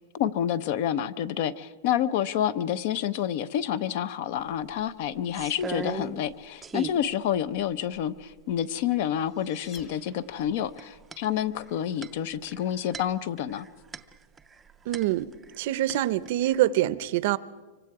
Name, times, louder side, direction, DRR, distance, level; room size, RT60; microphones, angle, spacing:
voice 1, 0.0-13.7, left 10 dB, 45° left, 17 dB, 0.7 m, -28 dB
sound 1, 4.4-4.5 4.8-6.3 6.6-7.0 7.6-7.7 7.9-8.6 9.7-10.1 10.4-15.6 15.9-16.6, right 4 dB, 10° right, 0.5 m, -39 dB
sound 2, 9.1-10.7, left 6 dB, 30° left, 1.5 m, -51 dB
voice 2, 14.9-15.3 15.6-17.4, right 14 dB, 50° right, 17 dB, 0.6 m, -25 dB
25.0 x 24.0 x 4.8 m, 1.3 s
supercardioid pair, 165°, 0 cm